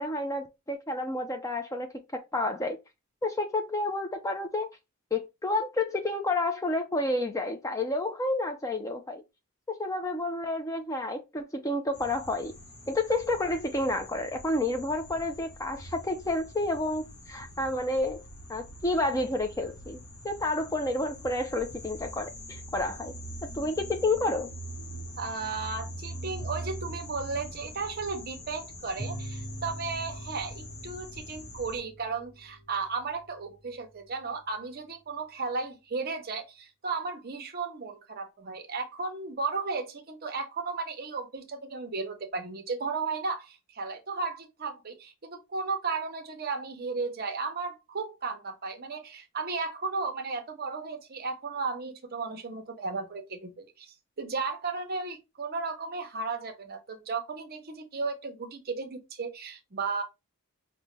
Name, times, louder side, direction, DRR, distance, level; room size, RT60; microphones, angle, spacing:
voice 1, 0.0-2.8 3.2-4.7 5.1-9.2 9.7-12.5 12.9-18.2 18.5-20.0 20.2-23.1 23.4-24.5, left 2 dB, 15° left, 0.4 m, -30 dB
sound 1, 11.9-31.8, right 1 dB, 75° left, 1.0 m, -43 dB
voice 2, 25.2-60.0, right 4 dB, 45° right, 0.7 m, -34 dB
sound 2, 29.0-34.1, right 1 dB, 30° left, 1.0 m, -43 dB
5.3 x 2.1 x 3.1 m
head